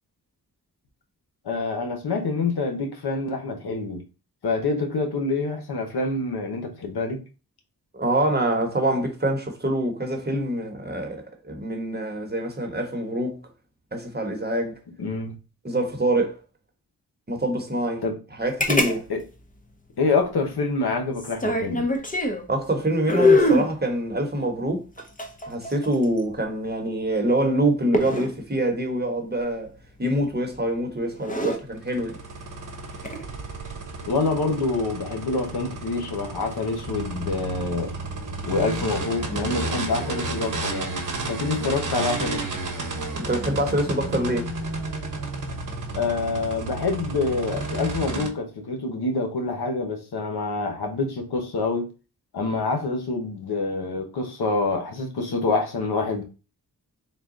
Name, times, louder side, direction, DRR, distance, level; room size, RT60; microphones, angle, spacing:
voice 1, 1.4-4.0 4.4-7.2 15.0-15.4 18.0-18.2 19.1-19.2 20.0-21.9 34.1-37.9 38.4-41.0 41.3-42.4 45.9-51.9 52.3-56.2, left 3 dB, 80° left, 1.0 m, -26 dB
voice 2, 7.9-13.4 13.9-14.7 15.6-16.4 17.3-18.0 18.4-19.0 22.5-24.8 25.5-29.7 30.0-32.2 43.1-44.5, right 1 dB, 25° right, 1.0 m, -25 dB
sound 1, 18.6-19.0 19.2-19.3 21.2-22.5 23.1-23.7 25.0-26.2 27.9-28.3 30.2-30.5 31.1-31.6 32.9-33.2, left 1 dB, 20° left, 0.7 m, -22 dB
sound 2, 31.7-48.3, right 2 dB, 55° right, 1.0 m, -32 dB
3.9 x 2.3 x 3.7 m
cardioid pair, 65°, 38 cm